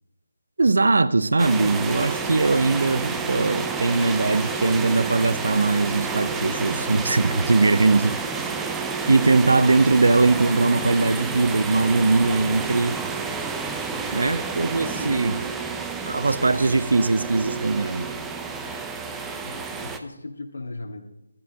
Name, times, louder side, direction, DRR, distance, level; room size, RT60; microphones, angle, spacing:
voice 1, 0.6-8.2 9.1-13.0 14.1-15.4 16.1-18.1, right 3 dB, 70° right, 15 dB, 0.7 m, -20 dB
sound 1, 1.4-20.0, right 4 dB, 10° right, 0.7 m, -30 dB
voice 2, 6.3-7.2 8.1-8.2 13.9-14.3 14.9-15.2 19.4-21.1, left 2 dB, 75° left, 0 dB, 2.0 m, -39 dB
15.0 x 13.0 x 3.6 m, 0.98 s
figure-of-eight pair, 155°, 0 cm